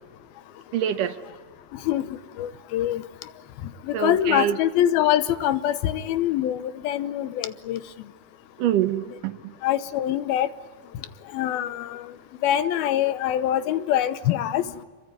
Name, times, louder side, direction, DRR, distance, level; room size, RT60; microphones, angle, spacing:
voice 1, 0.7-1.2 3.9-4.6 8.6-9.5, right 10 dB, 70° right, 9 dB, 2.4 m, -25 dB
voice 2, 1.9-3.0 3.9-7.8 9.6-10.5 11.3-12.0 12.4-14.6, left 11 dB, 80° left, 13 dB, 2.8 m, -24 dB
26.5 x 23.0 x 9.5 m, 1.5 s
omnidirectional pair, 4.3 m